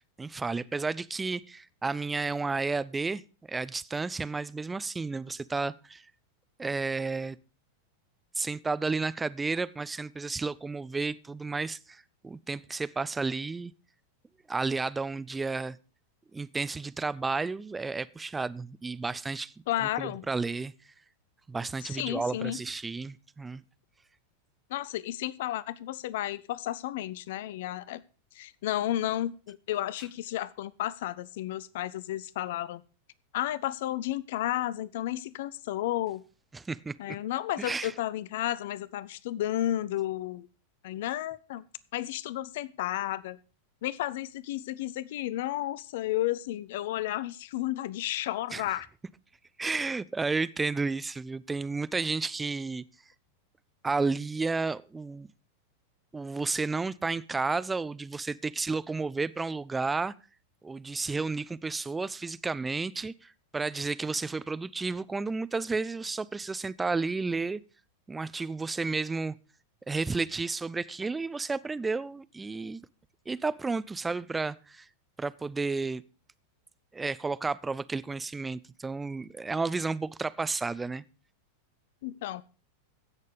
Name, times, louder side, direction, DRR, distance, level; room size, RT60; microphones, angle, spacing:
voice 1, 0.2-3.2 3.5-6.1 6.6-7.4 8.4-13.7 14.5-15.8 16.3-19.5 20.0-20.7 21.5-23.6 36.5-36.9 37.6-37.9 48.5-48.6 49.6-52.8 53.8-55.3 56.1-60.1 60.6-67.6 68.1-69.4 69.9-72.8 73.3-74.9 75.2-76.0 76.9-81.0, right 4 dB, 10° right, 0.5 m, -32 dB
voice 2, 19.7-20.3 21.8-22.6 24.7-28.0 28.3-32.8 33.3-36.2 37.0-40.5 40.8-41.6 41.9-43.4 43.8-48.9 82.0-82.4, left 14 dB, 55° left, 0.5 m, -32 dB
16.0 x 6.6 x 5.2 m
figure-of-eight pair, 90°, 0 cm